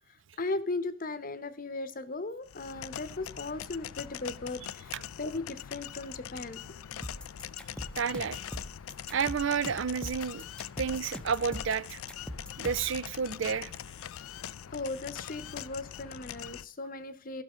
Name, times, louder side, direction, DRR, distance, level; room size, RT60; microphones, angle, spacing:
voice 1, 0.4-6.6 14.7-17.4, left 2 dB, 45° left, 0.8 m, -37 dB
sound 1, 2.5-16.6, left 10 dB, 90° left, 0.4 m, -43 dB
sound 2, 7.0-13.0, left 1 dB, 5° left, 0.7 m, -41 dB
voice 2, 8.0-8.4 9.1-10.4 10.8-12.0 12.6-13.7, right 6 dB, 70° right, 0.5 m, -30 dB
15.0 x 6.1 x 5.0 m
head